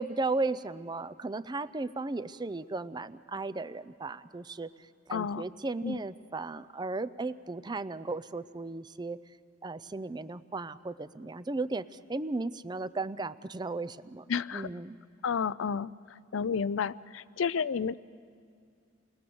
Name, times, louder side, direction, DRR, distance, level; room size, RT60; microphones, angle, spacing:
voice 1, 0.0-4.7 5.1-9.2 9.6-14.2 14.5-15.0, right 3 dB, 20° right, 15 dB, 0.5 m, -35 dB
voice 2, 5.1-5.4 5.8-6.0 14.3-14.7 15.2-15.9 16.3-18.0, left 6 dB, 85° left, 17 dB, 0.5 m, -31 dB
29.5 x 21.5 x 7.0 m, 2.3 s
head